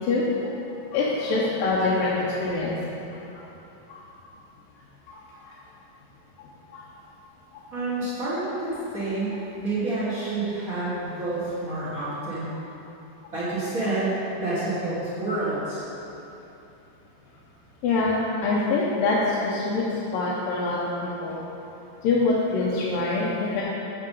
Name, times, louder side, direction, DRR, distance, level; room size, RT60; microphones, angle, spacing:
voice 1, 0.7-2.7 3.9-4.0 5.1-5.5 6.7-6.8 17.8-19.8 20.1-21.4 22.0-23.6, left 3 dB, 90° left, -6 dB, 2.5 m, -25 dB
voice 2, 7.7-12.5 13.3-15.8, right 2 dB, 45° right, -9 dB, 1.1 m, -28 dB
8.6 x 5.7 x 5.4 m, 3.0 s
omnidirectional pair, 4.0 m